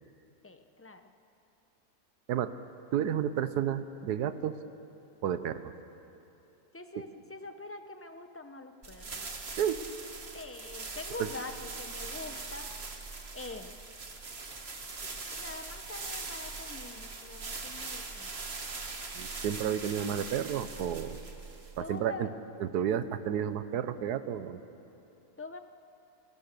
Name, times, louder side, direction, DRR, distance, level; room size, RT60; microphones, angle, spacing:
voice 1, 0.4-1.0 6.7-9.3 10.3-12.7 13.3-13.7 15.3-18.3 21.8-22.3 25.4-25.6, left 3 dB, 15° left, 7 dB, 0.6 m, -44 dB
voice 2, 2.9-4.5 5.2-5.7 6.9-7.0 9.6-9.8 11.2-11.3 19.1-21.2 21.8-22.3 22.6-24.6, right 9 dB, 80° right, 12 dB, 1.4 m, -31 dB
sound 1, 8.8-22.0, right 3 dB, 40° right, 1.8 m, -41 dB
28.0 x 18.0 x 6.8 m, 3.0 s
omnidirectional pair, 1.7 m